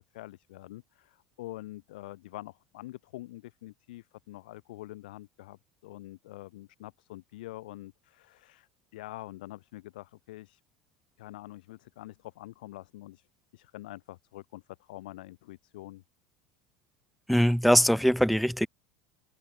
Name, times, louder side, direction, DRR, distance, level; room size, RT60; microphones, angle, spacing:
voice 1, 0.1-10.6 11.2-13.3 13.5-16.0, left 17 dB, 85° left, 7.0 m, -45 dB
voice 2, 17.3-18.7, equal, ahead, 0.5 m, -22 dB
supercardioid pair, 125°, 5 cm